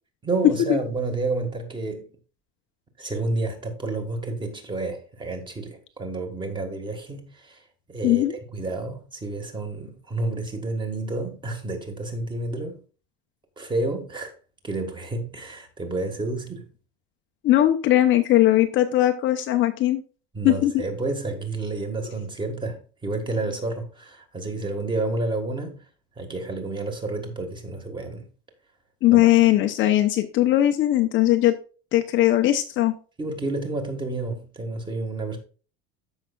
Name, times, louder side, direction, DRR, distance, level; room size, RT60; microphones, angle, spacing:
voice 1, 0.2-2.1 3.0-7.6 7.9-8.2 8.5-12.8 13.6-14.3 14.6-16.7 20.3-25.8 26.2-28.3 29.1-29.3 33.2-35.4, right 2 dB, 15° right, 1.6 m, -30 dB
voice 2, 8.0-8.4 17.4-20.0 20.4-20.8 29.0-31.5 31.9-32.9, left 14 dB, 40° left, 0.7 m, -19 dB
14.0 x 5.6 x 2.4 m
cardioid pair, 165°, 31 cm